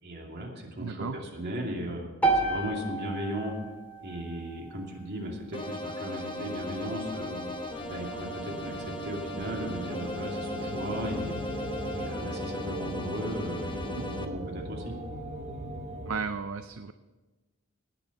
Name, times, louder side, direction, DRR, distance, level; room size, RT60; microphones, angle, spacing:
voice 1, 0.0-3.5 4.0-7.4 7.9-11.3 11.9-14.9, equal, 50° right, 0 dB, 2.6 m, -36 dB
voice 2, 0.8-1.2 13.9-14.0 16.1-16.9, right 5 dB, 70° right, 10 dB, 0.5 m, -34 dB
sound 1, 2.2-6.4, right 3 dB, 5° left, 2.0 m, -32 dB
sound 2, 5.5-14.2, left 1 dB, 25° left, 1.1 m, -37 dB
sound 3, 6.3-16.2, right 1 dB, 35° right, 1.7 m, -40 dB
18.5 x 7.0 x 5.9 m, 1.2 s
head